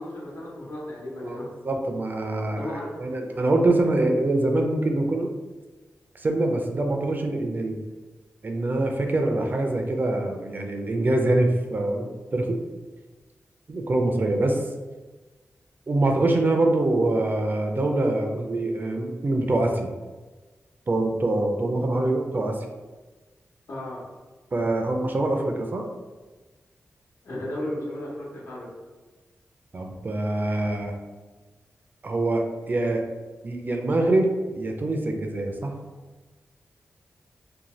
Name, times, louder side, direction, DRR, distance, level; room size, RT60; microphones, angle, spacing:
voice 1, 0.0-1.5 2.6-3.0 23.7-24.0 27.2-28.7, left 1 dB, 70° left, -5 dB, 0.9 m, -34 dB
voice 2, 1.6-5.3 6.1-7.8 8.4-12.6 13.7-14.6 15.9-19.9 20.9-22.6 24.5-25.8 29.7-31.0 32.0-33.1 33.4-35.7, right 2 dB, 40° right, 3 dB, 0.4 m, -24 dB
2.6 x 2.2 x 3.0 m, 1.3 s
wide cardioid pair, 95°, 5 cm